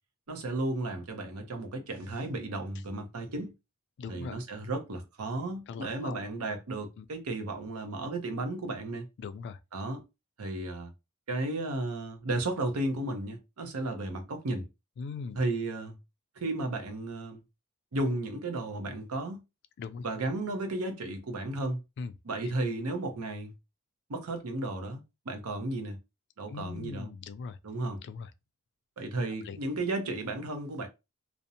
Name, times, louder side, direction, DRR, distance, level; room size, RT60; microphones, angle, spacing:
voice 1, 0.3-3.5 4.1-9.1 9.7-10.0 10.4-10.9 11.3-14.7 15.4-16.0 16.4-17.4 17.9-19.4 20.0-21.8 22.2-23.5 24.1-26.0 26.4-27.1 27.6-28.0 29.0-30.9, right 2 dB, 75° right, 0.7 m, -34 dB
voice 2, 4.0-4.4 5.7-6.2 7.0-7.1 9.2-9.6 15.0-15.4 19.8-20.1 22.0-22.1 22.4-22.5 26.5-27.6 28.0-28.3 29.4-29.6, left 5 dB, 50° left, 0.3 m, -40 dB
2.5 x 2.0 x 2.7 m
head